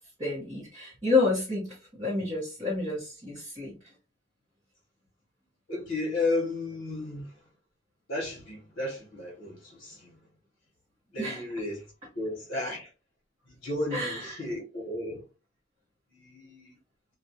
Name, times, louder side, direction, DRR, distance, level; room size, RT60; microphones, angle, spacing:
voice 1, 0.2-3.9 11.2-11.4 13.9-14.4, left 3 dB, 25° right, 0.8 m, -29 dB
voice 2, 5.7-7.4 8.1-10.2 11.1-12.9 13.5-15.2 16.1-16.8, left 2 dB, 60° left, 0.9 m, -33 dB
2.3 x 2.1 x 2.7 m
head